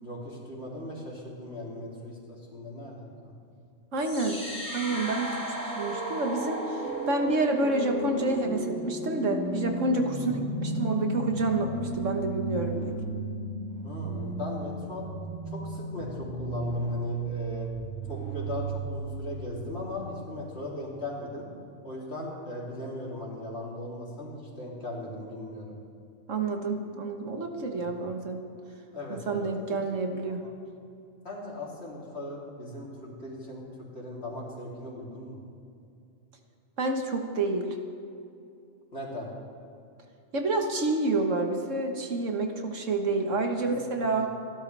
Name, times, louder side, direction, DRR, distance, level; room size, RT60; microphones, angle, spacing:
voice 1, 0.0-3.3 10.2-10.5 13.8-15.1 15.5-17.7 18.1-21.5 21.8-25.8 27.8-28.1 28.9-29.5 30.3-30.5 31.2-33.7 33.9-35.4 38.9-39.3 43.7-43.8 44.2-44.3, left 1 dB, 55° left, -4 dB, 3.5 m, -38 dB
voice 2, 3.9-4.4 4.7-12.8 26.3-28.4 29.1-30.4 36.8-37.8 40.3-44.3, right 2 dB, 75° right, 3 dB, 1.7 m, -29 dB
sound 1, 4.0-20.0, right 1 dB, 15° right, 3.8 m, -34 dB
29.0 x 12.0 x 3.4 m, 2.6 s
omnidirectional pair, 1.3 m